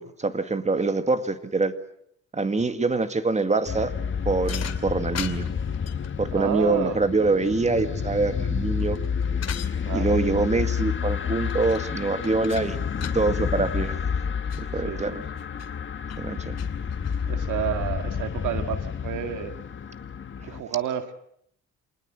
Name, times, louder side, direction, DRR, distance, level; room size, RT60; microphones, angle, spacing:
voice 1, 0.0-1.7 2.3-3.9 4.3-5.5 6.2-9.0 9.9-14.0 14.7-15.2 16.2-16.6, right 3 dB, 25° right, 10 dB, 2.0 m, -25 dB
sound 1, 3.7-20.6, left 7 dB, 40° left, 1.9 m, -30 dB
sound 2, 4.4-6.1 8.5-9.7 11.4-11.9 12.2-13.2 13.8-13.9 14.2-14.7 15.4-15.7 16.1-16.2 16.6-17.3, left 9 dB, 55° left, 2.7 m, -39 dB
voice 2, 6.3-7.0 9.9-10.1 14.9-15.2 17.3-19.6 20.4-21.1, right 8 dB, 80° right, 8 dB, 2.0 m, -30 dB
26.5 x 20.0 x 7.6 m, 0.69 s
cardioid pair, 90°, 30 cm